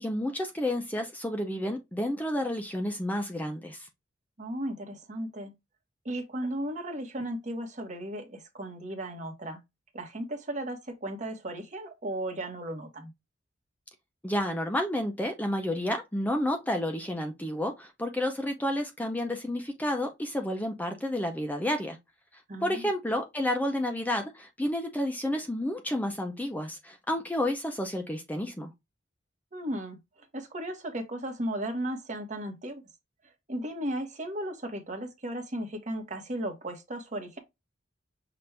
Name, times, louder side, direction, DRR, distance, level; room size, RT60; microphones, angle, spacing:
voice 1, 0.0-3.9 14.2-22.0 22.6-28.7, left 1 dB, 10° left, 0.6 m, -30 dB
voice 2, 4.4-5.5 6.0-9.6 9.9-13.1 22.5-22.9 29.5-32.8 33.5-37.4, right 1 dB, 40° right, 1.2 m, -35 dB
5.9 x 2.6 x 3.3 m
head